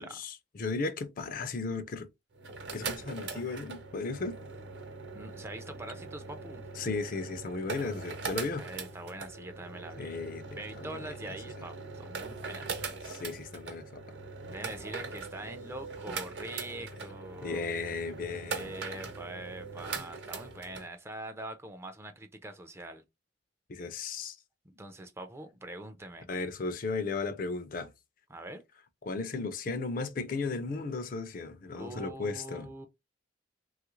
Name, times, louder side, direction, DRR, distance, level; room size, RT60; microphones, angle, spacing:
voice 1, 0.0-2.1 2.7-4.4 6.8-8.7 10.0-11.1 13.0-14.0 17.4-18.7 23.7-24.4 26.3-27.9 29.0-32.7, left 3 dB, 50° left, 0.5 m, -35 dB
sound 1, 2.3-20.9, right 4 dB, 70° right, 0.8 m, -41 dB
voice 2, 5.1-6.6 8.6-10.2 10.6-12.7 14.5-17.7 18.5-23.0 24.7-26.3 28.3-28.6 31.7-32.9, right 1 dB, 15° right, 0.4 m, -43 dB
3.2 x 2.4 x 3.0 m
head